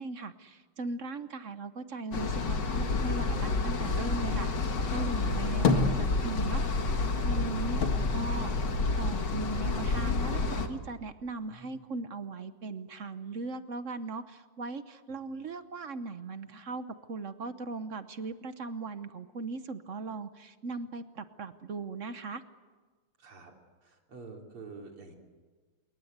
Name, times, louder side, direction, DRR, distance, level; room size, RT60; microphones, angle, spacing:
voice 1, 0.0-4.5 4.9-6.6 7.2-22.4, right 3 dB, 50° right, 11 dB, 1.0 m, -39 dB
sound 1, 2.1-10.7, left 3 dB, 55° left, 2.3 m, -29 dB
sound 2, 5.6-6.7 7.0-9.4 9.7-10.6, left 4 dB, 70° left, 2.6 m, -31 dB
voice 2, 23.2-23.5 23.8-25.1, right 4 dB, 85° right, 1 dB, 4.2 m, -48 dB
27.5 x 22.5 x 8.1 m, 1.4 s
omnidirectional pair, 2.4 m